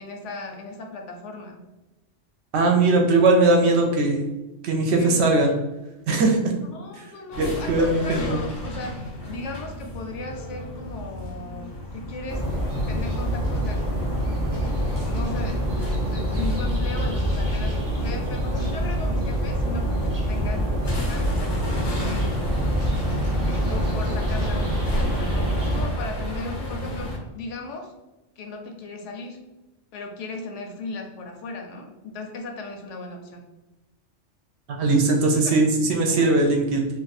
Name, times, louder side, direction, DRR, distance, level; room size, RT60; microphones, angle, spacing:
voice 1, 0.0-1.6 5.0-5.3 6.5-12.5 12.9-14.3 15.0-22.4 23.4-27.9 28.4-29.4 29.9-33.5 35.1-35.3, left 2 dB, 75° left, 3 dB, 0.9 m, -37 dB
voice 2, 2.5-4.2 4.6-5.5 6.1-6.5 7.4-8.4 34.7-36.9, right 2 dB, 65° right, 2 dB, 0.8 m, -20 dB
sound 1, 7.3-27.2, equal, 35° left, 0.4 m, -33 dB
sound 2, 12.3-25.8, equal, 25° right, 0.5 m, -26 dB
2.6 x 2.4 x 4.0 m, 1.0 s
omnidirectional pair, 1.3 m